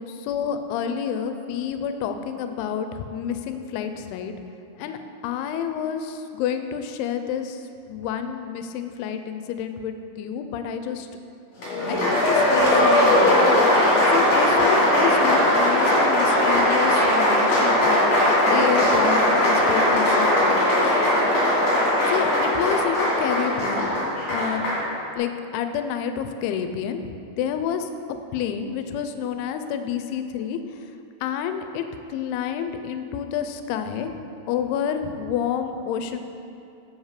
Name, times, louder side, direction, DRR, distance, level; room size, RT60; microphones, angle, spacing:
voice 1, 0.0-4.3 4.8-5.0 5.2-7.6 7.9-11.1 11.9-13.5 14.1-18.1 18.5-20.6 22.1-23.9 24.3-24.6 25.2-27.0 27.4-27.9 28.3-30.6 31.2-31.8 32.1-34.1 34.5-36.2, left 8 dB, 85° left, 8 dB, 2.5 m, -29 dB
Applause, 11.6-24.9, left 1 dB, 40° left, 2.8 m, -19 dB
7.5 x 7.3 x 4.8 m, 2.6 s
omnidirectional pair, 4.5 m